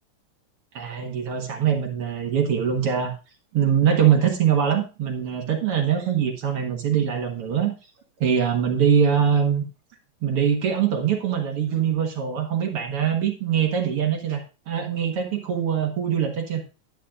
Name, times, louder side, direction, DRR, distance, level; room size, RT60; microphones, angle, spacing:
voice 1, 0.7-3.1 3.5-7.7 8.2-9.6 10.2-16.6, right 8 dB, 55° right, 3 dB, 2.1 m, -23 dB
11.5 x 9.8 x 2.5 m, 0.31 s
omnidirectional pair, 3.6 m